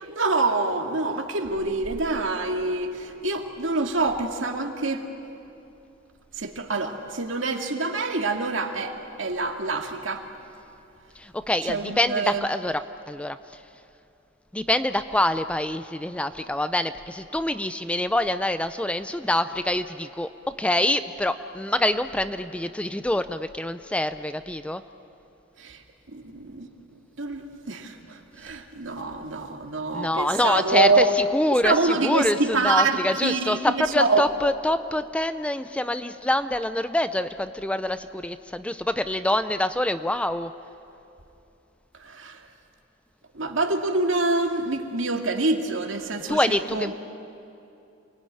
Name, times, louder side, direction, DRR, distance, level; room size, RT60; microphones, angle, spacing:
voice 1, 0.0-5.0 6.4-10.3 11.6-12.4 25.6-25.8 26.1-26.7 27.2-31.2 31.5-34.3 42.0-42.4 43.3-46.9, right 3 dB, 70° right, 4 dB, 2.2 m, -26 dB
voice 2, 11.2-12.8 13.1-13.6 14.5-24.8 29.9-40.5 46.3-46.9, left 1 dB, 5° left, 11 dB, 0.5 m, -25 dB
29.0 x 20.5 x 9.9 m, 2.8 s
head